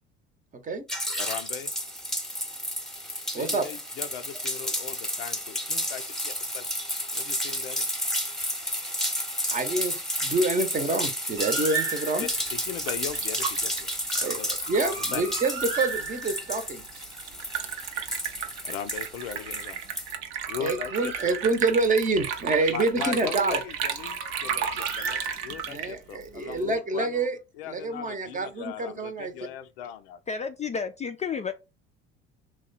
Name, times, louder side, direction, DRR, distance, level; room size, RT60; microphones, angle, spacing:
voice 1, 0.5-0.8 3.3-3.6 9.5-12.3 14.2-14.4 14.7-16.8 20.6-23.6 25.7-27.4 27.6-29.3, right 3 dB, 25° right, 0.8 m, -27 dB
sound 1, 0.9-20.1, equal, ahead, 0.8 m, -32 dB
voice 2, 1.2-1.7 3.3-6.7 7.1-8.0 12.2-13.9 14.2-14.5 15.0-15.2 18.6-19.8 20.5-21.4 22.7-27.3 27.5-30.2, left 9 dB, 80° left, 0.5 m, -38 dB
Bird, 11.4-12.5 14.6-16.7 20.1-22.0 23.9-25.9, right 4 dB, 85° right, 1.2 m, -36 dB
Liquid, 12.2-26.7, right 8 dB, 65° right, 0.7 m, -34 dB
voice 3, 30.3-31.5, left 6 dB, 25° left, 0.4 m, -31 dB
2.9 x 2.2 x 4.0 m
hypercardioid pair, 70°, 29 cm